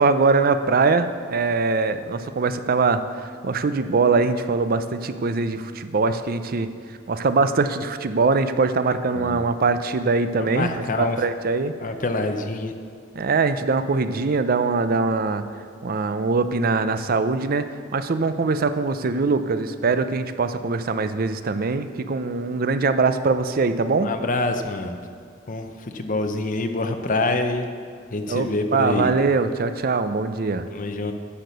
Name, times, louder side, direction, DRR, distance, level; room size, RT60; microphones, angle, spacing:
voice 1, 0.0-3.0 3.4-6.7 7.1-11.7 13.2-15.5 15.8-24.1 28.3-30.7, right 4 dB, 50° right, 11 dB, 0.5 m, -22 dB
voice 2, 10.4-11.2 11.8-12.7 24.0-25.0 25.5-27.7 28.1-29.1 30.7-31.1, left 2 dB, 45° left, 6 dB, 0.7 m, -26 dB
10.0 x 6.6 x 6.8 m, 2.1 s
head